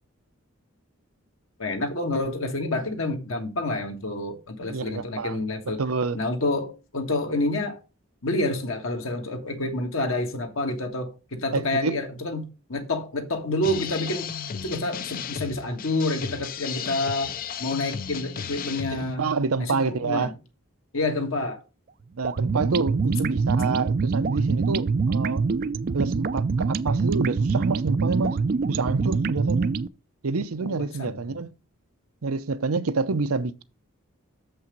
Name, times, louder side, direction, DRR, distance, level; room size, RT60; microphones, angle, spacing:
voice 1, 1.6-5.8 6.1-7.8 8.2-14.3 14.6-19.3 19.6-20.3 20.9-21.6 30.6-31.3, left 2 dB, 70° left, 1.6 m, -28 dB
voice 2, 4.6-6.2 11.5-12.0 18.9-20.3 22.2-25.4 25.9-29.7 30.2-31.5 32.2-33.6, right 4 dB, 85° right, 0.7 m, -28 dB
sound 1, 13.6-19.2, left 7 dB, 40° left, 0.5 m, -34 dB
sound 2, 22.2-29.9, right 4 dB, 40° right, 0.3 m, -25 dB
6.9 x 5.6 x 5.2 m
head